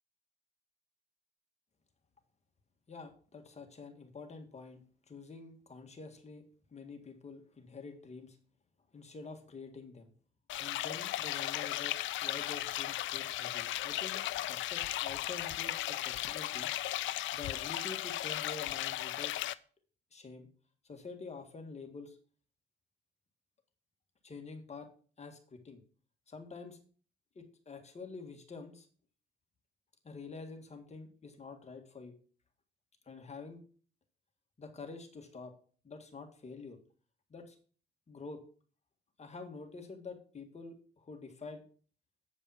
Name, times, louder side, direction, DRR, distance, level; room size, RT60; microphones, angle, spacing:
voice 1, 2.9-6.4 6.7-8.4 8.9-10.1 10.6-16.7 17.3-19.4 20.1-20.5 20.8-22.2 24.2-24.9 25.2-25.8 26.3-26.8 27.4-28.9 30.0-32.1 33.1-33.6 34.6-35.5 35.8-36.8 37.3-37.6 38.1-38.4 39.2-41.6, left 4 dB, 35° left, 4 dB, 1.8 m, -47 dB
sound 1, 10.5-19.5, left 14 dB, 75° left, 0.5 m, -36 dB
8.8 x 5.2 x 5.7 m, 0.42 s
cardioid pair, 90°, 20 cm